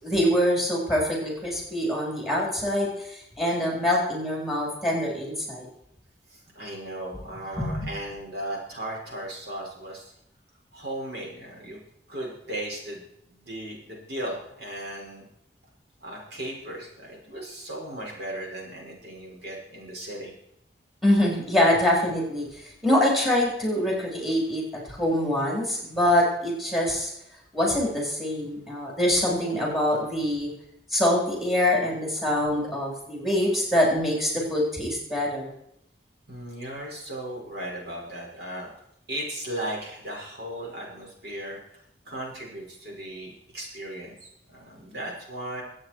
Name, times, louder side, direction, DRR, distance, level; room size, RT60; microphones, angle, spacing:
voice 1, 0.0-5.7 7.6-7.9 21.0-24.6 24.9-27.1 27.5-30.5 30.9-35.5, left 1 dB, ahead, -2 dB, 4.0 m, -24 dB
voice 2, 6.3-10.1 10.7-11.8 12.1-13.0 13.3-15.2 16.0-20.3 36.3-38.7 39.1-45.6, right 1 dB, 65° right, -3 dB, 5.9 m, -36 dB
24.5 x 8.7 x 4.6 m, 0.77 s
head